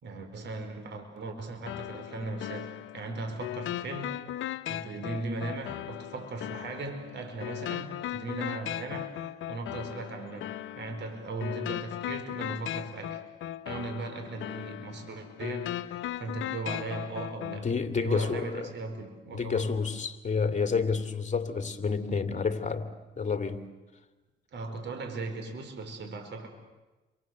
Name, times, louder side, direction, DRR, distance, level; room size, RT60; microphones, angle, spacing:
voice 1, 0.0-4.2 4.7-9.2 9.5-13.2 13.6-17.7 18.0-19.7 24.5-26.5, right 3 dB, 65° right, 5.1 m, -38 dB
sound 1, 1.7-17.6, left 12 dB, 80° left, 1.0 m, -38 dB
voice 2, 17.6-18.7 19.3-22.9 23.2-23.7, left 5 dB, 40° left, 2.7 m, -29 dB
29.5 x 24.5 x 7.9 m
cardioid pair, 90°, 20 cm